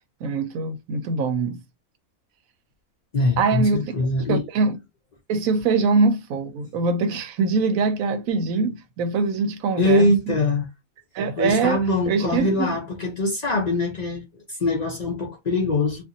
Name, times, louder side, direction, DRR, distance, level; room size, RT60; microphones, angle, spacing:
voice 1, 0.2-1.6 3.4-4.0 4.3-4.8 5.3-10.3 11.1-12.8, right 4 dB, 75° right, 1.0 m, -23 dB
voice 2, 3.1-4.4 9.8-10.7 11.4-16.0, left 2 dB, 65° left, 0.4 m, -23 dB
2.5 x 2.5 x 2.6 m
omnidirectional pair, 1.5 m